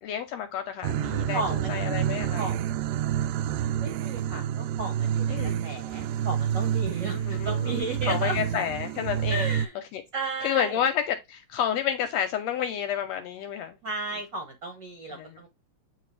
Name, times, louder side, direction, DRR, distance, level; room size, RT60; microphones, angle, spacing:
voice 1, 0.0-2.5 5.3-5.6 7.1-10.0 10.4-13.8 14.1-14.2 15.1-15.4, left 9 dB, 75° left, 1.6 m, -30 dB
sound 1, 0.8-9.7, right 10 dB, 80° right, 1.5 m, -28 dB
voice 2, 1.3-1.8 2.4-2.6 3.8-8.4 9.3-9.7 10.1-10.8 13.8-15.5, right 2 dB, 55° right, 1.3 m, -34 dB
8.7 x 3.4 x 3.2 m
omnidirectional pair, 3.4 m